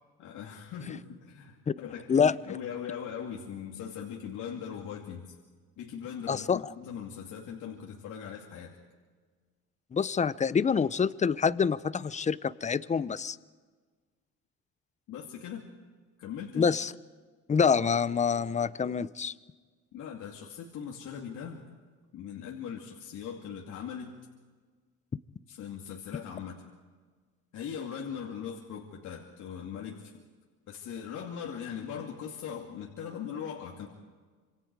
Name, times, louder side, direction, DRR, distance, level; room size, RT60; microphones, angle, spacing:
voice 1, 0.2-5.3 5.8-8.8 15.1-15.7 16.2-16.7 19.9-21.6 22.1-24.1 25.5-26.6 27.5-30.1 30.7-33.9, left 8 dB, 65° left, -1 dB, 2.7 m, -40 dB
voice 2, 6.3-6.6 9.9-13.4 16.6-16.9 17.5-19.3, left 6 dB, 20° left, 17 dB, 0.7 m, -26 dB
26.5 x 26.5 x 4.8 m, 1.5 s
cardioid pair, 100°, 32 cm